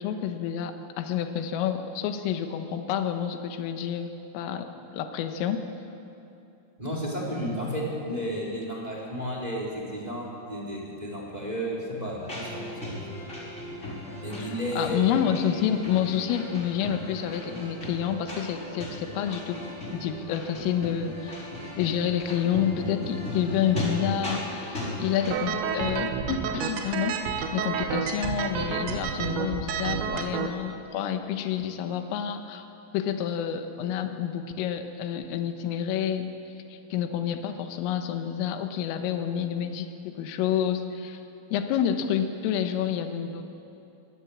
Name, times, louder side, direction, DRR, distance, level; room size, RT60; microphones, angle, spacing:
voice 1, 0.0-5.6 14.4-21.5 21.8-27.2 27.5-32.7 32.9-36.3 36.7-41.2 41.5-43.4, left 9 dB, 85° left, 7 dB, 3.7 m, -29 dB
voice 2, 6.8-12.6 14.2-15.0, equal, 10° right, -4 dB, 3.3 m, -32 dB
sound 1, 12.2-25.4, left 1 dB, 15° left, 4.4 m, -36 dB
sound 2, 25.3-30.5, right 7 dB, 70° right, 3.1 m, -30 dB
23.0 x 17.0 x 8.5 m, 2.8 s
omnidirectional pair, 5.9 m